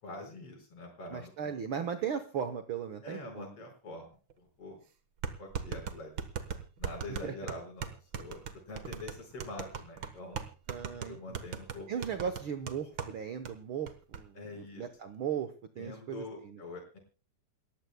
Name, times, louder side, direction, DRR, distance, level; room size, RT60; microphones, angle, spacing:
voice 1, 0.0-1.3 3.0-4.8 5.4-6.1 6.8-8.4 8.7-10.4 11.1-11.9 14.3-14.9 15.8-17.0, left 2 dB, 45° left, 3 dB, 6.2 m, -45 dB
voice 2, 1.1-3.5 7.1-7.5 10.7-11.5 11.9-16.6, right 7 dB, 80° right, 9 dB, 1.1 m, -37 dB
sound 1, 4.3-4.4 5.2-13.2 13.5-13.6 13.9-14.2, right 7 dB, 60° right, 1.3 m, -38 dB
28.5 x 15.0 x 2.2 m, 0.34 s
omnidirectional pair, 3.8 m